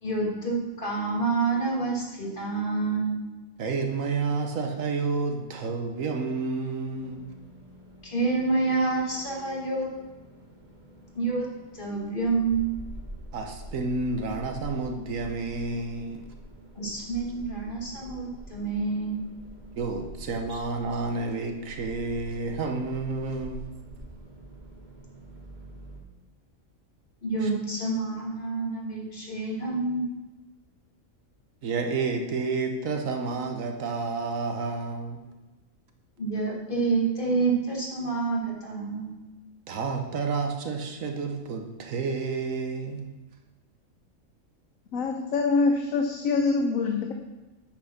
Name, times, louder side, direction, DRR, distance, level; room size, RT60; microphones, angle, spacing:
voice 1, 0.0-3.2 8.0-9.9 11.1-11.5 11.7-12.7 16.8-19.2 20.5-20.6 27.2-30.0 36.2-39.2, right 3 dB, 40° left, -3 dB, 2.3 m, -28 dB
voice 2, 3.6-7.3 13.3-16.2 19.8-23.6 27.4-27.5 31.6-35.2 39.7-43.1, right 4 dB, 75° right, 4 dB, 1.3 m, -30 dB
sound 1, 6.8-26.0, right 1 dB, 35° right, 1.9 m, -46 dB
voice 3, 44.9-47.1, left 4 dB, 75° left, 4 dB, 1.2 m, -25 dB
8.8 x 6.1 x 5.7 m, 1.1 s
omnidirectional pair, 1.4 m